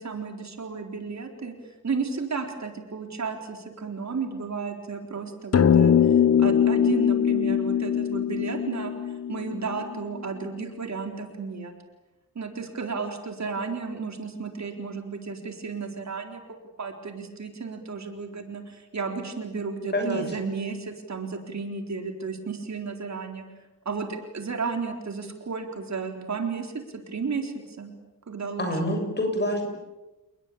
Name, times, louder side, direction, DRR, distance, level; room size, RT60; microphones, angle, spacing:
voice 1, 0.0-1.5 1.8-11.7 12.4-16.4 16.8-23.4 23.9-27.9 28.3-28.9, right 4 dB, 50° right, 4 dB, 4.0 m, -33 dB
sound 1, 5.5-10.2, left 8 dB, 45° left, 1.2 m, -22 dB
voice 2, 19.9-20.4 28.6-29.7, equal, 30° left, 4 dB, 7.0 m, -26 dB
29.5 x 21.0 x 8.7 m, 1.0 s
wide cardioid pair, 145°, 35 cm